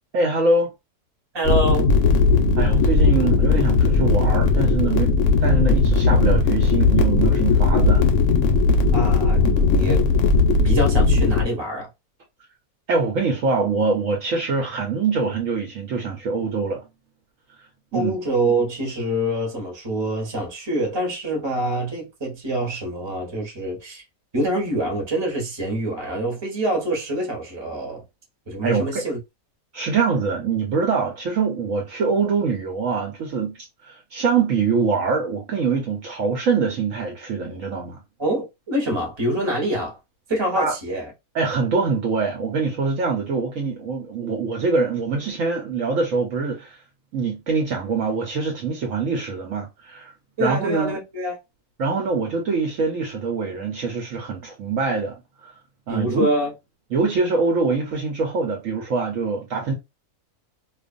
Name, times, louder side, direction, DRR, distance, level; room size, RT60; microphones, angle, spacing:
voice 1, 0.1-0.7 2.6-8.1 12.9-16.8 17.9-18.2 28.6-29.0 29.7-33.5 33.8-38.0 40.6-40.7 41.3-46.7 47.1-50.1 50.4-50.9 51.8-55.2 55.4-55.5 55.9-56.3 56.9-59.7, right 4 dB, 65° right, 1.1 m, -24 dB
voice 2, 1.3-1.9 8.9-10.1 10.6-11.9 17.9-24.0 24.3-28.0 28.5-29.2 38.2-40.0 40.3-41.1 50.4-51.4 55.9-56.5, right 1 dB, 20° right, 1.0 m, -25 dB
sound 1, 1.4-11.4, left 4 dB, 65° left, 0.8 m, -17 dB
2.5 x 2.4 x 2.4 m
omnidirectional pair, 1.6 m